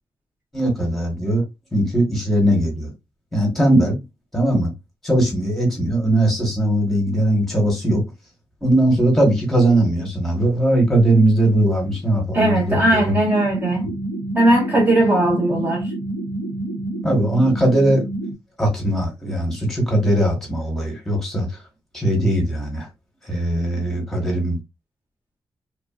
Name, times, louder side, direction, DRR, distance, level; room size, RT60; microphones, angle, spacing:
voice 1, 0.5-1.4 1.7-2.9 3.3-4.0 4.3-4.7 5.0-8.0 8.6-13.2 17.0-18.1 18.6-21.6 21.9-22.9 23.2-24.6, right 1 dB, 5° left, 1.1 m, -19 dB
voice 2, 12.3-13.9 14.3-15.9, right 1 dB, 25° right, 0.6 m, -18 dB
sound 1, 13.2-18.3, right 2 dB, 65° right, 0.8 m, -28 dB
3.0 x 2.4 x 2.3 m
wide cardioid pair, 170°, 9 cm